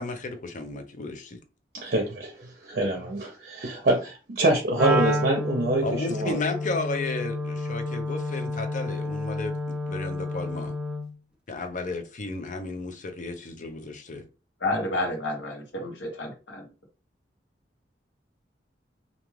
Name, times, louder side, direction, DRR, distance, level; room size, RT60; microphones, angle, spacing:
voice 1, 0.0-1.4 5.8-10.7 11.5-14.2, left 3 dB, 45° left, 0.5 m, -33 dB
voice 2, 1.7-6.4, right 2 dB, 55° right, 0.6 m, -25 dB
Wind instrument woodwind instrument, 4.7-11.1, left 1 dB, 5° right, 0.5 m, -30 dB
voice 3, 14.6-16.7, left 1 dB, 90° left, 1.0 m, -30 dB
2.5 x 2.3 x 3.1 m
head